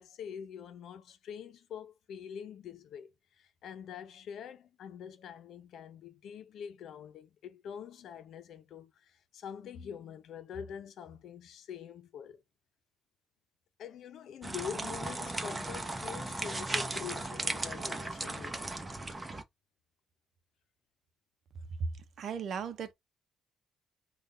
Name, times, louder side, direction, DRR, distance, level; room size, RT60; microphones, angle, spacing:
voice 1, 0.0-12.4 13.8-18.8, left 8 dB, 70° left, 0.7 m, -45 dB
sound 1, 14.4-19.4, right 2 dB, 20° right, 0.8 m, -36 dB
voice 2, 22.2-22.9, right 5 dB, 65° right, 0.7 m, -35 dB
3.7 x 2.5 x 3.8 m
cardioid pair, 90°, 0 cm